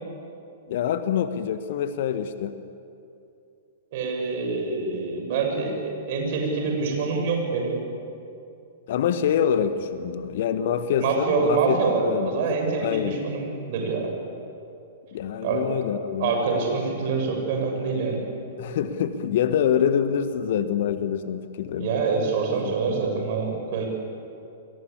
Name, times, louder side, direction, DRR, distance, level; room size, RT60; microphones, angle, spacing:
voice 1, 0.7-2.5 8.9-11.8 12.1-12.4 12.8-13.2 15.1-16.3 18.6-21.9 22.6-23.0, left 8 dB, 50° left, 11 dB, 1.5 m, -25 dB
voice 2, 3.9-5.7 6.1-7.8 11.0-14.1 15.4-15.6 16.2-18.2 21.8-23.9, right 4 dB, 45° right, 2 dB, 7.1 m, -25 dB
28.0 x 22.0 x 8.6 m, 2.6 s
figure-of-eight pair, 105°, 0 cm